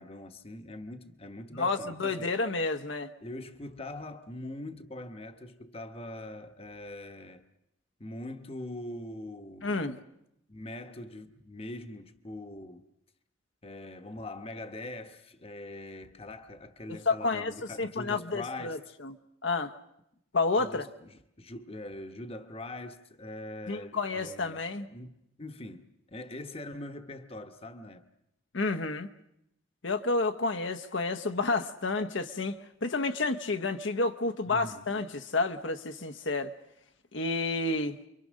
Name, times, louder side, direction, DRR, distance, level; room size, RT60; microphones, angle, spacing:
voice 1, 0.0-2.3 3.2-7.4 8.0-9.9 10.5-12.9 13.6-18.8 20.5-24.6 24.9-28.0 34.4-34.8, left 1 dB, 30° left, 1.1 m, -42 dB
voice 2, 1.5-3.1 9.6-10.0 17.1-17.5 17.8-19.2 19.4-19.7 20.3-20.9 23.7-24.9 28.5-29.1 29.8-36.5 37.1-38.0, left 3 dB, 65° left, 1.0 m, -30 dB
28.5 x 24.0 x 6.4 m
head